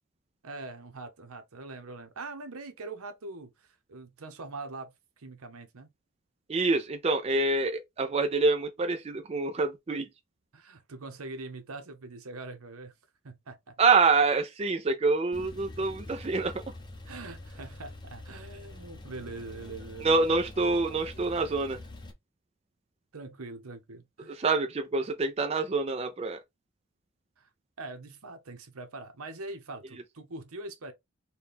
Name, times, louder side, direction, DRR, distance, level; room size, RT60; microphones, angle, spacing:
voice 1, 0.4-5.9 10.5-12.9 13.2-13.7 17.1-20.3 23.1-24.4 27.4-27.5 27.8-30.9, right 3 dB, 80° right, 0.8 m, -43 dB
voice 2, 6.5-10.1 13.8-16.6 20.0-21.8 24.3-26.4, right 3 dB, 30° right, 0.3 m, -26 dB
Male speech man speaking / Car / Idling, 15.3-22.1, left 2 dB, 20° left, 0.5 m, -45 dB
4.2 x 2.3 x 3.4 m
head